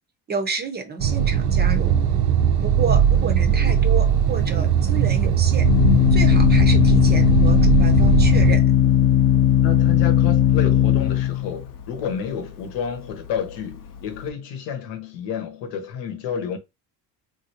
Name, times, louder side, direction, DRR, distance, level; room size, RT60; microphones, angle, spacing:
voice 1, 0.3-1.9 2.6-5.7 6.1-8.6, right 4 dB, 25° right, 0.5 m, -30 dB
sound 1, 1.0-8.6, right 8 dB, 65° right, 0.6 m, -19 dB
Organ, 3.8-14.3, left 11 dB, 50° left, 0.6 m, -19 dB
voice 2, 9.6-16.6, left 7 dB, 80° left, 1.0 m, -30 dB
3.2 x 2.6 x 2.8 m
cardioid pair, 120°, 42 cm